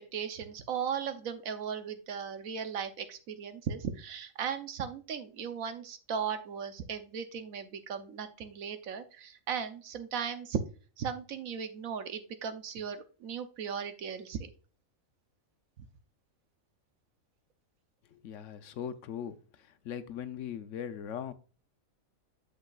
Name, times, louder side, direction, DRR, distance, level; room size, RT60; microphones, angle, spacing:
voice 1, 0.1-10.6 11.0-14.5, right 7 dB, 75° right, 1.2 m, -37 dB
voice 2, 18.1-19.3 19.8-21.3, left 8 dB, 65° left, 0.9 m, -39 dB
8.1 x 6.6 x 2.3 m
omnidirectional pair, 1.5 m